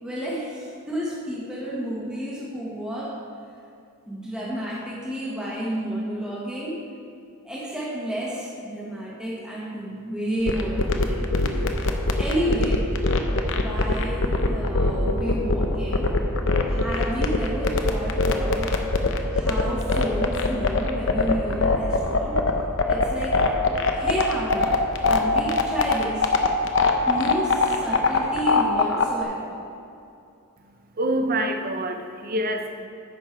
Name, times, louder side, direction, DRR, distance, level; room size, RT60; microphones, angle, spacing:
voice 1, 0.0-3.1 4.1-6.8 7.4-11.2 12.2-12.9 13.5-16.1 16.7-18.7 19.3-22.4 22.9-23.5 23.9-26.3 27.1-29.6, equal, 5° right, -6 dB, 1.4 m, -31 dB
sound 1, 10.5-29.2, left 3 dB, 60° left, 0.7 m, -21 dB
voice 2, 31.0-32.9, right 1 dB, 40° right, 5 dB, 0.7 m, -26 dB
10.5 x 6.7 x 4.6 m, 2.5 s
head